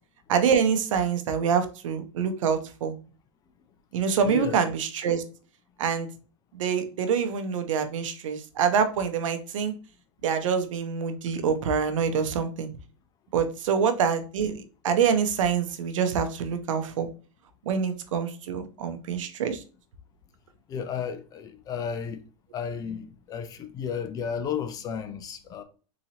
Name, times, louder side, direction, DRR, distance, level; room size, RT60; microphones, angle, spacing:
voice 1, 0.3-2.9 3.9-5.2 5.8-6.1 6.5-9.7 10.2-12.7 13.3-17.1 17.7-19.6, right 7 dB, 75° right, 0.7 m, -26 dB
voice 2, 4.2-4.6 20.7-22.2 22.5-25.6, left 7 dB, 25° left, 0.4 m, -33 dB
3.9 x 2.8 x 2.8 m
supercardioid pair, 140°, 16 cm